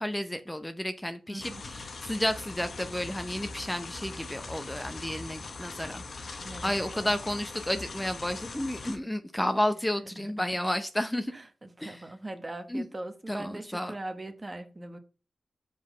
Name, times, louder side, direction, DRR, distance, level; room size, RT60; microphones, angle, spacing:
voice 1, 0.0-11.3 11.8-12.0 12.7-12.8 13.3-14.0, left 1 dB, 10° left, 0.7 m, -32 dB
voice 2, 1.3-1.6 6.4-7.2 10.2-10.7 11.3-15.0, right 2 dB, 30° right, 1.0 m, -41 dB
sound 1, 1.4-9.0, left 3 dB, 65° left, 1.0 m, -41 dB
5.3 x 4.0 x 5.2 m
cardioid pair, 50°, 0 cm